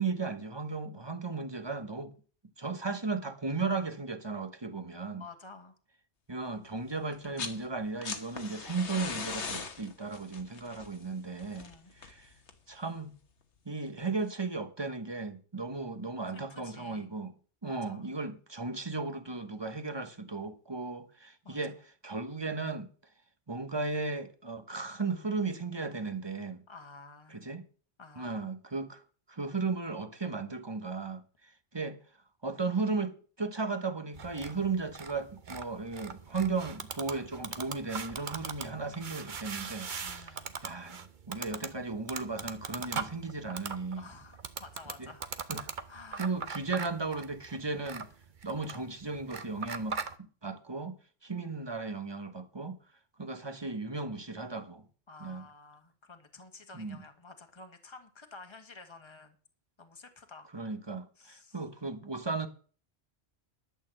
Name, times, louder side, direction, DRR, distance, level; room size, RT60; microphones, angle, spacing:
voice 1, 0.0-2.1 2.6-5.2 6.3-11.7 12.0-12.3 12.7-13.2 13.7-17.3 17.6-22.9 23.5-26.6 27.3-27.7 28.2-29.0 29.3-31.2 31.7-32.0 32.4-40.3 40.6-41.0 41.3-44.0 45.0-45.1 45.5-45.7 46.1-48.1 48.4-51.0 51.2-52.8 53.2-54.8 55.2-55.4 56.7-57.0 60.5-62.5, right 3 dB, 25° right, 1.1 m, -35 dB
voice 2, 5.2-5.8 11.6-11.9 16.5-17.1 17.6-18.2 21.4-21.6 26.7-27.4 28.0-28.5 40.0-40.5 44.0-45.3 45.9-46.6 55.1-59.4 59.8-60.5 61.2-61.5, left 3 dB, 25° left, 1.5 m, -51 dB
sound 1, 7.1-7.6 7.9-12.7 14.0-14.1, left 5 dB, 75° left, 1.6 m, -40 dB
sound 2, 34.1-50.1, right 5 dB, 50° right, 1.0 m, -41 dB
11.5 x 6.4 x 7.6 m
omnidirectional pair, 1.2 m